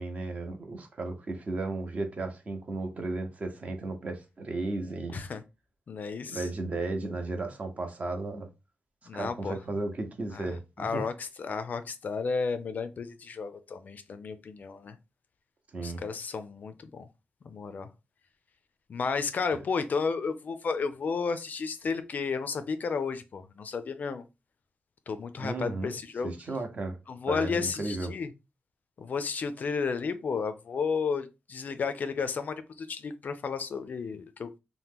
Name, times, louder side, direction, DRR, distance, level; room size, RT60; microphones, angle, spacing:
voice 1, 0.0-5.2 6.3-8.5 9.1-11.0 15.7-16.0 25.4-25.9 26.2-27.0 27.3-28.1, right 2 dB, 40° right, 0.7 m, -34 dB
voice 2, 5.9-6.5 9.1-9.6 10.3-10.5 10.8-15.0 15.8-17.1 17.4-17.9 18.9-24.2 25.1-26.3 27.1-28.3 29.0-34.6, left 5 dB, 50° left, 0.4 m, -32 dB
2.9 x 2.1 x 3.4 m
wide cardioid pair, 125°, 4 cm